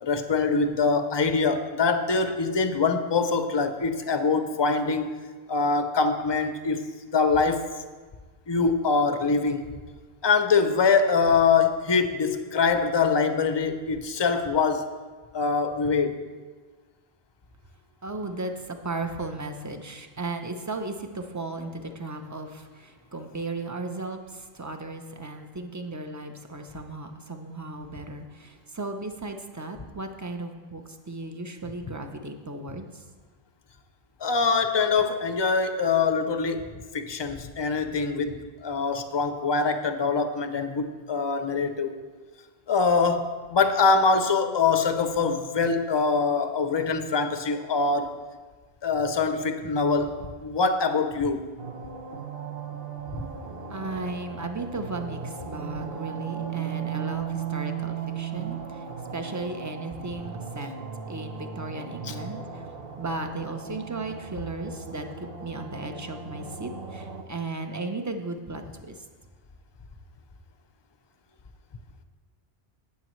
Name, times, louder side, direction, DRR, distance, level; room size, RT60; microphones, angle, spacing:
voice 1, 0.0-5.1 5.5-6.9 7.1-7.7 8.5-9.7 10.2-14.9 15.3-16.2 34.2-36.6 36.9-42.0 42.7-48.2 48.8-51.4 62.0-62.2, left 4 dB, 30° left, 8 dB, 0.6 m, -24 dB
voice 2, 18.0-22.6 23.1-24.2 24.6-32.9 53.7-55.2 55.4-58.6 59.1-60.7 61.1-62.4 63.0-65.0 65.4-68.9, right 2 dB, 20° right, 6 dB, 0.6 m, -35 dB
sound 1, 51.6-67.2, right 7 dB, 70° right, 1.0 m, -36 dB
18.0 x 6.9 x 3.1 m, 1.4 s
omnidirectional pair, 1.0 m